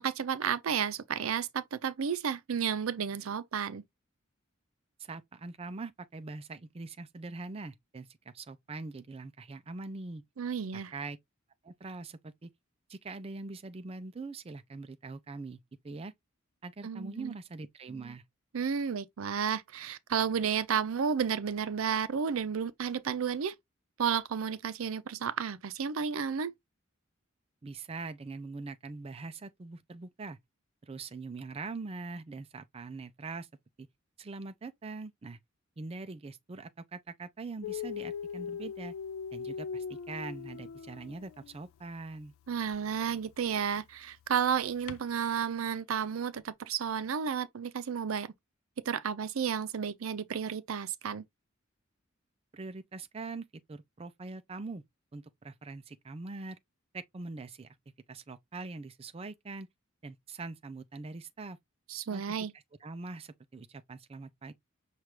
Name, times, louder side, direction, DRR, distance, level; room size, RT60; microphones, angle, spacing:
voice 1, 0.0-3.8 10.4-10.9 16.8-17.4 18.5-23.5 24.0-26.5 42.5-48.3 48.9-51.2 61.9-62.5, right 7 dB, 85° right, 0.5 m, -32 dB
voice 2, 5.0-8.1 8.3-10.2 10.7-11.2 11.6-12.5 12.9-15.6 15.8-16.1 16.6-18.2 27.6-30.4 30.8-33.5 33.8-33.9 34.2-35.4 35.8-38.9 39.3-42.3 52.5-54.8 55.1-56.6 56.9-57.7 58.1-59.7 60.0-61.6 62.1-62.2 62.8-64.5, right 3 dB, 30° right, 0.4 m, -42 dB
Dog, 37.6-41.6 42.6-42.8 44.9-45.0, left 7 dB, 80° left, 0.3 m, -40 dB
5.8 x 2.4 x 3.1 m
head